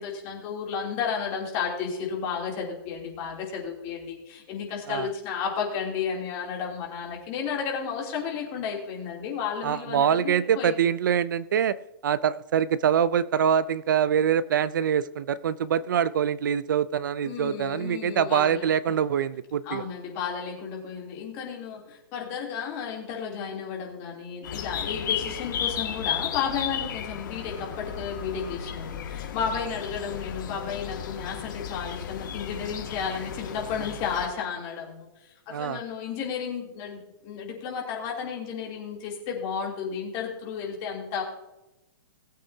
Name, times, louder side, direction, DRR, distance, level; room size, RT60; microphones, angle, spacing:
voice 1, 0.0-10.7 17.2-18.7 19.6-41.2, left 6 dB, 25° left, -2 dB, 3.1 m, -33 dB
voice 2, 9.6-11.8 12.0-19.8 35.5-35.8, right 8 dB, 60° right, 17 dB, 0.5 m, -24 dB
sound 1, 24.4-34.3, left 8 dB, 55° left, 2.0 m, -34 dB
20.0 x 8.3 x 2.8 m, 0.96 s
hypercardioid pair, 165°, 12 cm